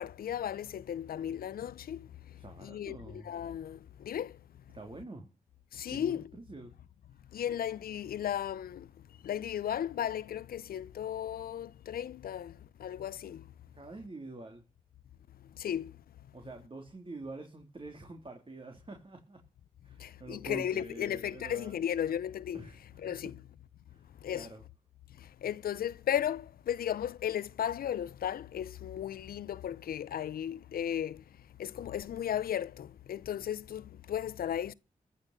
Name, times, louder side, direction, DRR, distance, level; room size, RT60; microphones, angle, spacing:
voice 1, 0.0-2.1 2.6-4.3 5.7-6.3 7.3-8.9 9.2-12.5 12.8-13.4 15.6-15.9 20.0-22.6 23.0-23.4 24.2-24.5 25.4-31.2 31.6-34.7, left 10 dB, 85° left, 0.6 m, -35 dB
voice 2, 2.4-3.3 4.7-5.3 5.9-6.7 13.7-14.6 16.3-19.4 19.8-21.7 22.5-23.2 23.9-24.6, right 2 dB, 35° right, 3.2 m, -46 dB
14.0 x 6.4 x 7.3 m
cardioid pair, 55°, 15 cm